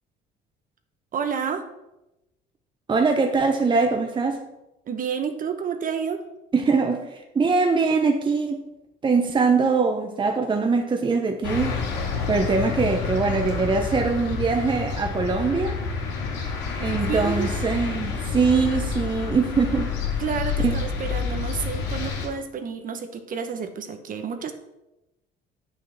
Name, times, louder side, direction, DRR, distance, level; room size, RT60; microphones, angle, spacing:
voice 1, 1.1-1.6 4.9-6.2 17.1-17.5 20.2-24.5, right 6 dB, 45° right, 1.2 m, -30 dB
voice 2, 2.9-4.4 6.5-8.6 9.0-11.8 12.3-15.8 16.8-20.2 20.6-20.7, right 4 dB, 25° right, 0.9 m, -22 dB
sound 1, 11.4-22.3, left 5 dB, 85° left, 2.6 m, -28 dB
8.7 x 6.5 x 5.9 m
supercardioid pair, 95°, 19 cm